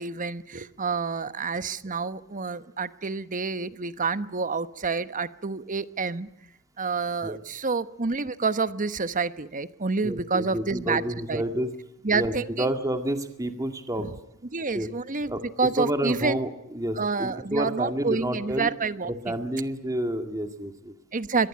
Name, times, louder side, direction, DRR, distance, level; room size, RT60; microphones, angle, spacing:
voice 1, 0.0-6.3 6.8-11.0 11.3-11.4 12.0-12.7 14.0-14.1 14.5-16.4 17.0-19.3 21.1-21.5, right 4 dB, 35° right, 13 dB, 1.1 m, -28 dB
voice 2, 10.0-11.7 12.1-14.1 14.7-14.9 15.3-15.4 15.8-18.7 19.1-20.9, right 1 dB, 15° right, 7 dB, 2.0 m, -29 dB
24.0 x 22.0 x 8.6 m, 0.80 s
head